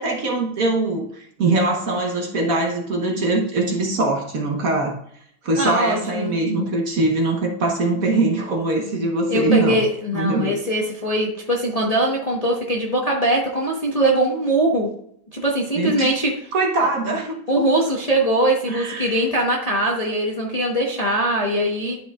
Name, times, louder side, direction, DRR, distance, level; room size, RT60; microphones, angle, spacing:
voice 1, 0.0-5.0 5.4-9.8 10.1-10.6 15.7-16.2 16.5-17.6 18.7-19.2, right 2 dB, 55° right, 1 dB, 1.2 m, -22 dB
voice 2, 5.6-6.4 9.3-14.9 15.3-16.3 17.5-22.0, right 1 dB, 30° left, -2 dB, 0.8 m, -21 dB
11.5 x 4.9 x 2.4 m, 0.69 s
omnidirectional pair, 2.1 m